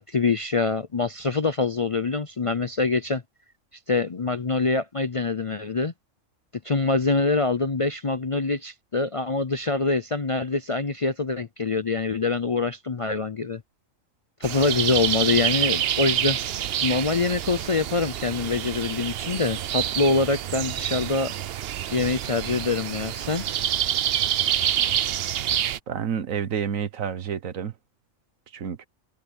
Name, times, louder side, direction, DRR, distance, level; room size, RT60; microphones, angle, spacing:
voice 1, 0.0-3.2 3.9-5.9 6.6-13.6 14.4-16.4 16.8-21.3 21.9-23.5, left 3 dB, 40° left, 0.5 m, -25 dB
sound 1, 14.4-25.8, right 11 dB, 60° right, 0.7 m, -27 dB
voice 2, 25.9-27.7 28.5-28.9, right 7 dB, 85° right, 1.5 m, -29 dB
omnidirectional pair, 1.4 m